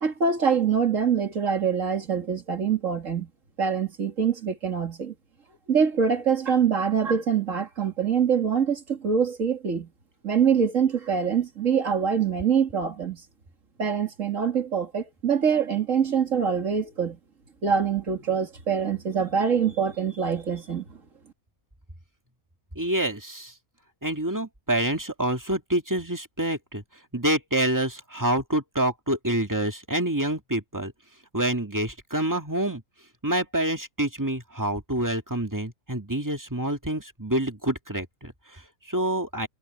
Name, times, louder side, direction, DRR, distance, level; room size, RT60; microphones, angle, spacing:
voice 1, 0.0-3.3 3.6-5.1 5.7-9.9 10.2-13.2 13.8-17.2 17.6-21.0, right 7 dB, 60° right, 2.7 m, -24 dB
voice 2, 22.8-23.5 24.0-26.8 27.1-30.9 31.3-32.8 33.2-39.5, right 1 dB, 15° right, 2.0 m, -27 dB
omnidirectional pair, 1.5 m